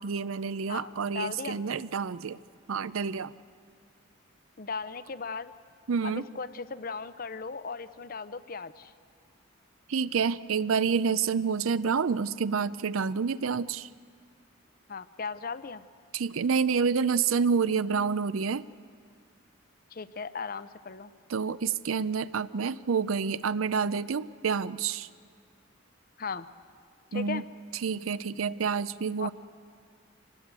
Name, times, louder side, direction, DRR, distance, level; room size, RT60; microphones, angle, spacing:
voice 1, 0.0-2.4 2.7-3.3 5.9-6.3 9.9-13.9 16.1-18.7 21.3-25.1 27.1-27.4 27.8-29.3, right 6 dB, 85° right, 16 dB, 0.5 m, -28 dB
voice 2, 0.7-1.6 4.6-5.5 6.0-8.9 14.9-15.8 19.9-21.1 26.2-26.5 27.1-27.4 29.2-29.3, left 5 dB, 45° left, 14 dB, 0.6 m, -37 dB
25.5 x 19.5 x 8.2 m, 2.1 s
head